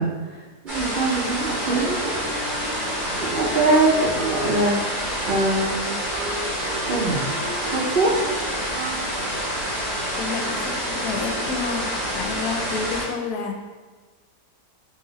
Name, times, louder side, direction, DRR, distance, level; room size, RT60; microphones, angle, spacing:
voice 1, 0.0-2.3 3.2-5.9 6.9-7.2 7.7-8.2, right 2 dB, 65° right, -6 dB, 0.5 m, -23 dB
sound 1, 0.7-13.0, equal, 30° right, 1.5 m, -27 dB
Wind instrument woodwind instrument, 1.6-8.4 8.7-9.2, right 1 dB, 85° right, 1.2 m, -36 dB
voice 2, 10.2-13.6, left 5 dB, 75° left, 2 dB, 1.0 m, -30 dB
4.1 x 2.6 x 3.9 m, 1.3 s
omnidirectional pair, 1.7 m